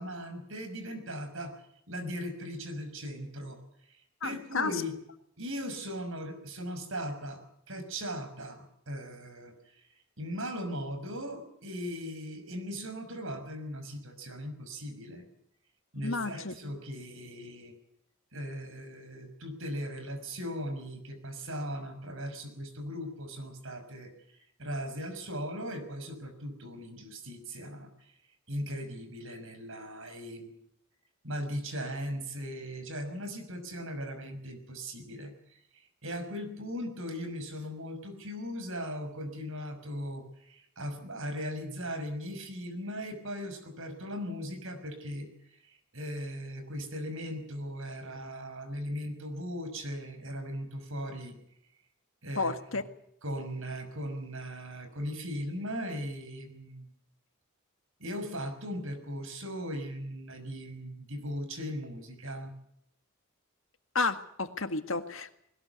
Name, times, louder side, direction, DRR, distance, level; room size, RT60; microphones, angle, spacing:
voice 1, 0.0-1.6 1.9-3.6 3.9-4.9 5.4-9.9 10.2-15.2 15.9-17.7 18.3-28.1 28.5-30.5 31.2-51.4 52.2-52.8 53.2-56.9 58.0-62.5, equal, 70° right, 8 dB, 5.9 m, -38 dB
voice 2, 4.2-4.7 16.0-16.5 52.4-52.8 64.0-65.3, left 3 dB, 70° left, 9 dB, 1.8 m, -31 dB
20.5 x 19.0 x 8.1 m, 0.73 s
head